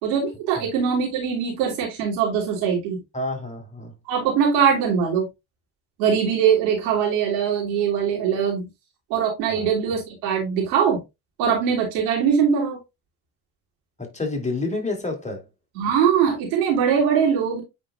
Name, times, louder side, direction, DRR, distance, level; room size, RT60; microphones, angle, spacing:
voice 1, 0.0-3.0 4.0-5.3 6.0-8.7 9.1-11.0 11.4-12.8 15.7-17.6, right 7 dB, 85° right, 3.2 m, -21 dB
voice 2, 3.1-4.0 9.5-9.7 14.0-15.4, left 2 dB, 15° left, 3.4 m, -29 dB
9.3 x 4.5 x 2.5 m
hypercardioid pair, 55°, 50 cm